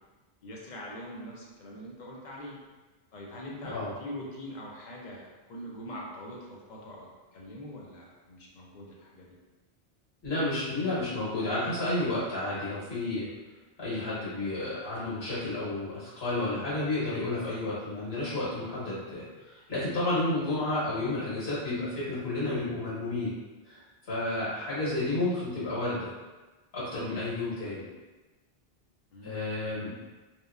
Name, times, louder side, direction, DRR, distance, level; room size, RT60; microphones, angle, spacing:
voice 1, 0.4-2.6 3.1-9.3 29.1-29.8, equal, 55° left, -3 dB, 0.6 m, -43 dB
voice 2, 3.6-3.9 10.2-13.3 13.8-23.3 23.6-26.1 26.7-27.9 29.2-29.9, left 2 dB, 80° left, -10 dB, 1.5 m, -31 dB
2.9 x 2.1 x 2.3 m, 1.2 s
omnidirectional pair, 1.1 m